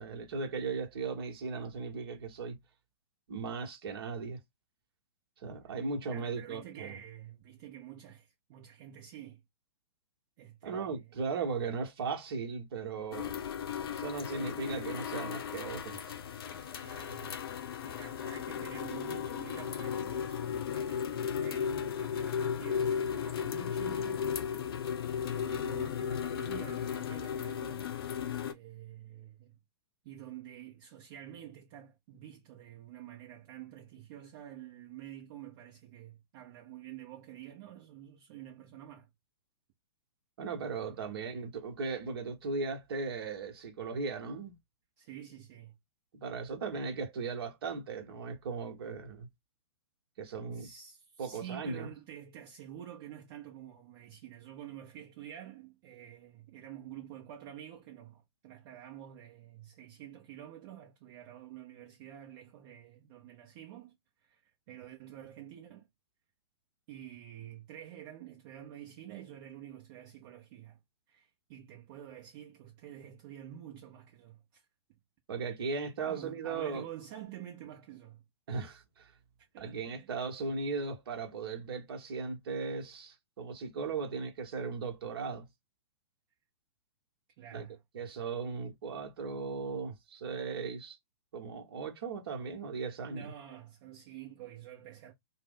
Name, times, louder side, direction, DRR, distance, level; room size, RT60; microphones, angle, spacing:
voice 1, 0.0-2.6 3.3-4.4 5.4-6.9 10.6-13.4 13.9-16.0 40.4-44.5 46.1-49.3 50.2-50.7 51.2-51.9 75.3-76.9 78.5-79.1 79.6-85.5 87.5-87.6 87.9-91.0 91.3-93.3, right 4 dB, 60° right, 1.0 m, -37 dB
voice 2, 6.1-9.4 10.4-11.2 16.8-17.4 17.8-24.3 25.3-27.9 28.4-29.6 30.0-39.1 40.8-41.0 45.0-45.8 50.5-65.9 66.9-70.8 71.1-74.6 76.1-78.2 79.4-80.1 87.4-87.8 93.1-95.1, right 11 dB, 40° right, 0.7 m, -49 dB
sound 1, 13.1-28.5, left 8 dB, 60° left, 0.6 m, -35 dB
2.6 x 2.1 x 3.5 m
figure-of-eight pair, 115°, 14 cm